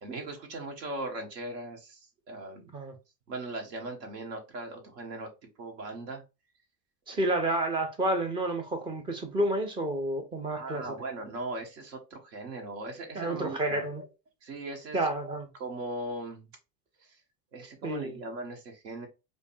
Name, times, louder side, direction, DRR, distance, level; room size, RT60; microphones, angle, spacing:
voice 1, 0.0-2.7 3.3-5.3 5.6-6.2 7.1-7.3 10.5-14.0 14.4-16.5 17.0-17.2 17.5-19.1, right 2 dB, 75° right, 1.5 m, -39 dB
voice 2, 7.1-11.0 13.1-14.0 14.9-15.5 17.8-18.2, right 1 dB, 10° right, 0.3 m, -30 dB
5.1 x 2.2 x 2.6 m
hypercardioid pair, 90°, 49 cm